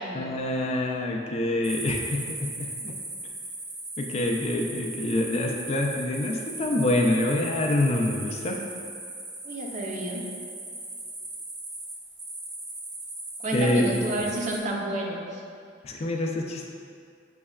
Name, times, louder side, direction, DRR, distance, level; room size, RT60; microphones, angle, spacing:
voice 1, 0.1-3.0 4.0-8.6 13.5-14.0 15.8-16.7, left 1 dB, 35° left, 1 dB, 0.3 m, -26 dB
sound 1, 1.6-14.6, right 2 dB, 85° right, 1.0 m, -38 dB
voice 2, 9.4-10.2 13.4-15.4, right 1 dB, 40° right, -1 dB, 0.5 m, -30 dB
6.2 x 2.2 x 2.3 m, 2.3 s
head